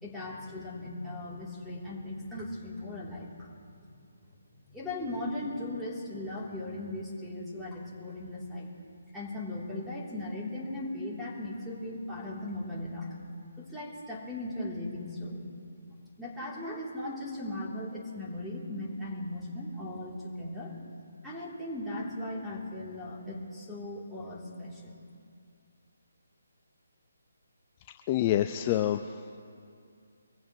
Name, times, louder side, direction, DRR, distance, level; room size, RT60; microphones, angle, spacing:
voice 1, 0.0-3.5 3.8-3.9 4.7-8.8 9.1-13.1 13.6-15.5 16.2-20.7 21.2-25.1, left 1 dB, ahead, -7 dB, 3.3 m, -38 dB
voice 2, 28.1-29.2, left 12 dB, 30° left, 7 dB, 0.5 m, -27 dB
24.5 x 15.5 x 3.2 m, 2.4 s
figure-of-eight pair, 150°, 0 cm